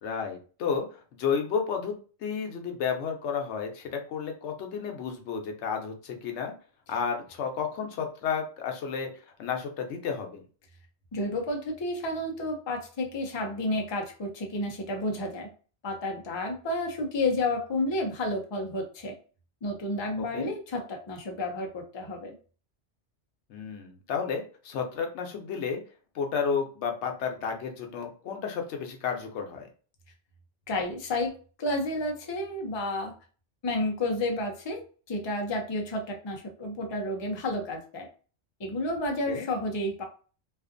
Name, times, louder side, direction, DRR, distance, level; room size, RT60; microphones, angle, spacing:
voice 1, 0.0-1.9 2.2-6.5 6.9-9.1 9.4-10.4 20.3-20.5 23.5-25.8 26.1-29.7 39.3-39.5, left 6 dB, 90° left, 4 dB, 0.9 m, -32 dB
voice 2, 11.1-15.5 15.8-19.1 19.6-22.3 30.7-31.3 31.6-33.1 33.6-34.8 35.1-38.1 38.6-40.0, left 1 dB, 35° left, 2 dB, 0.4 m, -31 dB
2.5 x 2.4 x 2.5 m, 0.38 s
omnidirectional pair, 1.1 m